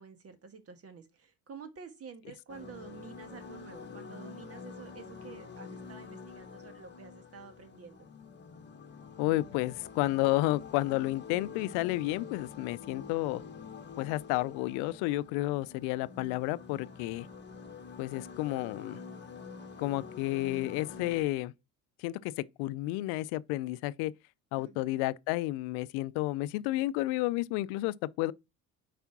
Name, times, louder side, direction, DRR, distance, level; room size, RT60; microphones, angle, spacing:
voice 1, 0.0-8.1 24.6-25.0, right 6 dB, 40° right, 1.5 m, -50 dB
sound 1, 2.5-21.2, left 5 dB, 30° left, 1.4 m, -47 dB
voice 2, 9.2-13.4 14.0-17.3 18.0-19.0 19.8-21.5 22.0-24.1 24.5-28.3, left 17 dB, 85° left, 0.5 m, -31 dB
5.0 x 4.5 x 5.8 m
supercardioid pair, 95°, 37 cm